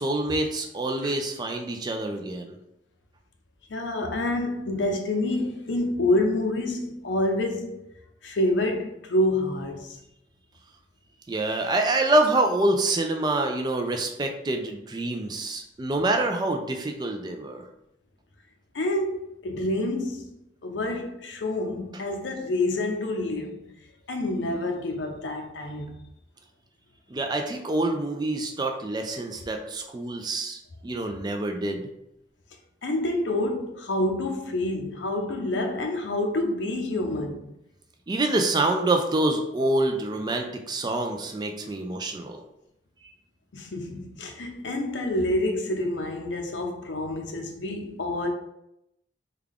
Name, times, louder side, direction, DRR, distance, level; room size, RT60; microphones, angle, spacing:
voice 1, 0.0-2.6 11.3-17.6 27.1-31.8 38.1-42.4, right 2 dB, 25° right, 0.3 m, -26 dB
voice 2, 3.7-7.9 8.2-10.0 18.7-20.2 20.6-23.7 24.1-25.9 32.8-37.5 43.5-48.3, left 1 dB, 90° left, 0.6 m, -27 dB
3.5 x 2.3 x 3.4 m
head